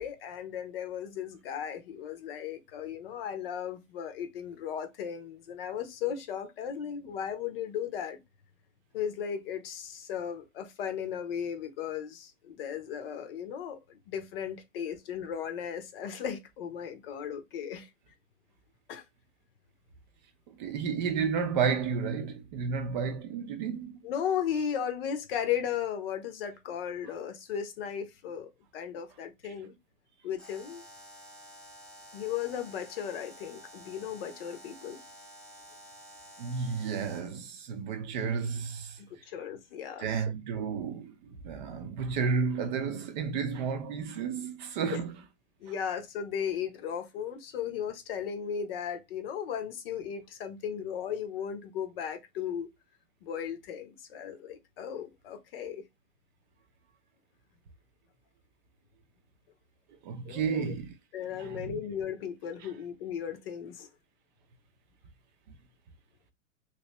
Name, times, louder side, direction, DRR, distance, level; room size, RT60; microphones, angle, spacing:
voice 1, 0.0-8.2 8.9-17.9 18.9-19.0 24.0-29.7 30.2-30.8 32.1-35.0 39.3-40.2 40.5-40.6 44.9-45.0 45.6-52.7 53.2-55.8 60.2-60.8 61.1-63.9, left 8 dB, 45° left, 0.8 m, -36 dB
voice 2, 20.5-24.1 36.4-39.0 40.0-41.1 41.4-45.1 60.0-60.9 61.4-61.8 62.6-62.7, right 6 dB, 35° right, 0.6 m, -32 dB
Alarm, 30.4-37.4, equal, ahead, 0.8 m, -51 dB
3.1 x 2.8 x 2.9 m
hypercardioid pair, 125°, 39 cm